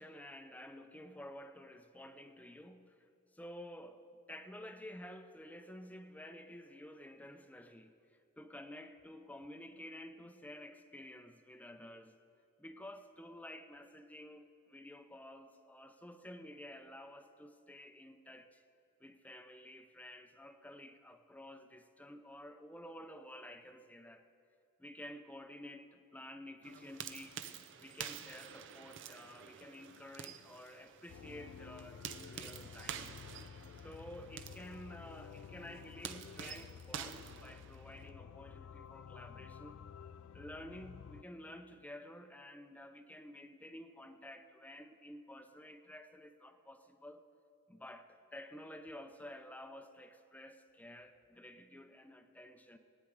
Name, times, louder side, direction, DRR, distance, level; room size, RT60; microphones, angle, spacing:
voice 1, 0.0-3.0 3.3-7.9 8.4-12.1 12.6-18.6 19.0-24.2 24.8-27.4 27.8-33.2 33.8-39.8 40.3-47.2 47.7-52.8, left 1 dB, 5° left, 8 dB, 0.6 m, -51 dB
sound 1, 26.6-38.1, right 8 dB, 60° right, 0.6 m, -49 dB
sound 2, 31.1-41.2, left 7 dB, 85° left, 0.4 m, -52 dB
20.5 x 9.3 x 4.8 m, 2.4 s
head